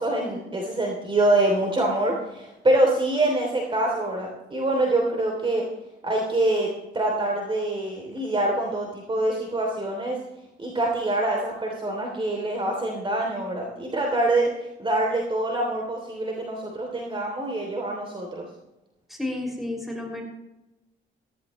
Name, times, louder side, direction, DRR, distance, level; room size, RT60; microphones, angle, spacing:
voice 1, 0.0-5.6 6.0-6.7 6.9-10.2 10.6-14.5 14.8-18.5, right 1 dB, 25° right, 0 dB, 3.1 m, -25 dB
voice 2, 19.1-20.2, left 2 dB, ahead, 1 dB, 6.0 m, -31 dB
16.0 x 15.0 x 3.2 m, 0.96 s
cardioid pair, 90°, 20 cm